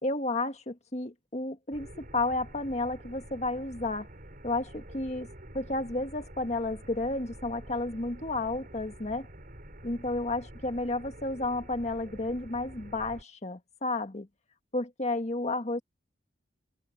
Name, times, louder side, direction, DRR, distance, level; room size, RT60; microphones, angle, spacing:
voice 1, 0.0-4.1 4.4-5.3 5.5-9.3 9.8-14.3 14.7-15.8, left 2 dB, 35° left, 1.7 m, -32 dB
sound 1, 1.7-13.2, right 1 dB, 50° right, 4.3 m, -48 dB
head